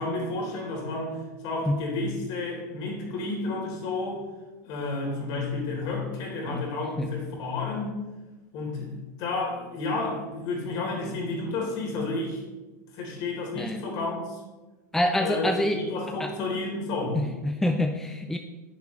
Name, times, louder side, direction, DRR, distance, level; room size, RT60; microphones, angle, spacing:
voice 1, 0.0-4.2 4.6-8.0 8.5-12.4 12.9-14.4 15.2-17.2, left 3 dB, 45° left, -1 dB, 3.8 m, -31 dB
voice 2, 14.9-15.8 16.2-16.3 17.1-18.4, left 1 dB, 5° left, 5 dB, 0.6 m, -26 dB
10.5 x 10.5 x 3.3 m, 1.2 s
figure-of-eight pair, 85°, 10 cm